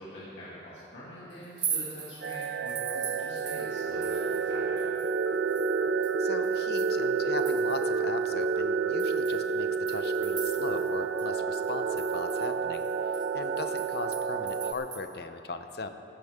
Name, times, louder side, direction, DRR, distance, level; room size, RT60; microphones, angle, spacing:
voice 1, 0.0-4.8, equal, 75° left, -9 dB, 2.5 m, -45 dB
sound 1, 1.4-4.5 4.8-8.0 8.4-8.5 9.0-10.9 11.2-11.3 11.6-15.0, right 7 dB, 25° right, 0.8 m, -40 dB
sound 2, 2.2-14.7, right 5 dB, 60° right, 0.4 m, -29 dB
voice 2, 6.2-12.8 13.3-15.9, left 3 dB, 55° left, 8 dB, 0.7 m, -38 dB
15.5 x 13.5 x 3.6 m, 2.7 s
head